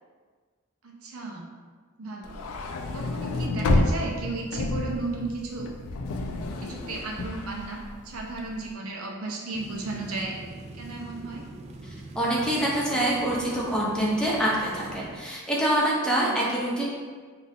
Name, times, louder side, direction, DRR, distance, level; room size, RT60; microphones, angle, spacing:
voice 1, 0.8-1.5 2.0-2.4 2.9-5.7 6.6-10.4 10.7-11.5 16.4-16.5, right 3 dB, 80° right, 0 dB, 0.7 m, -34 dB
sound 1, 2.2-8.6, left 2 dB, 85° left, 0.4 m, -29 dB
sound 2, 9.5-15.2, right 2 dB, 30° right, 0.3 m, -43 dB
voice 2, 12.1-16.9, right 1 dB, 5° left, -5 dB, 0.8 m, -25 dB
5.4 x 2.5 x 2.7 m, 1.5 s
head